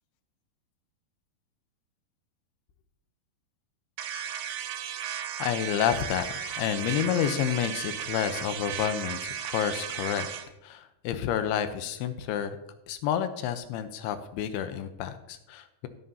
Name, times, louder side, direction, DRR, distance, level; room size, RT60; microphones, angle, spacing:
sound 1, 4.0-10.5, right 9 dB, 75° right, 2.2 m, -35 dB
voice 1, 5.4-10.3 10.6-12.6 12.9-15.9, left 9 dB, 85° left, 10 dB, 2.7 m, -29 dB
17.5 x 7.5 x 2.7 m, 0.89 s
omnidirectional pair, 4.6 m